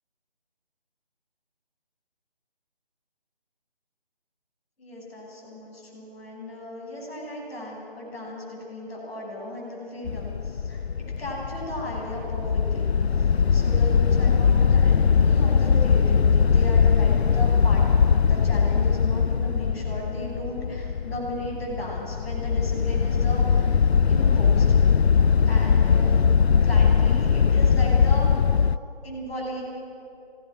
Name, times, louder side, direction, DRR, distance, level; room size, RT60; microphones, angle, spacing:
voice 1, 4.8-23.7 24.1-24.6 25.4-26.2 26.5-28.3 29.0-29.6, left 1 dB, 10° left, -12 dB, 7.6 m, -36 dB
sound 1, 10.1-28.8, left 6 dB, 80° left, 0.6 m, -20 dB
27.0 x 18.5 x 6.2 m, 2.6 s
figure-of-eight pair, 165°, 31 cm